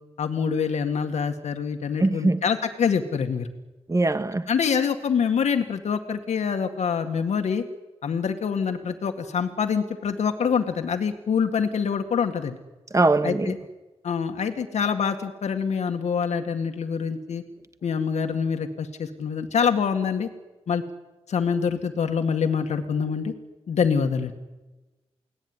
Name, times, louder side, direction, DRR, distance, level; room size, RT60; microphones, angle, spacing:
voice 1, 0.2-3.5 4.5-7.6 8.0-12.6 13.2-13.6 14.0-17.4 17.8-20.3 20.7-20.8 21.3-23.3 23.7-24.3, left 6 dB, 90° left, 2.0 m, -25 dB
voice 2, 2.0-2.4 3.9-4.4 12.9-13.5, right 2 dB, 30° right, 1.7 m, -21 dB
29.5 x 19.5 x 9.8 m
cardioid pair, 70°, 11 cm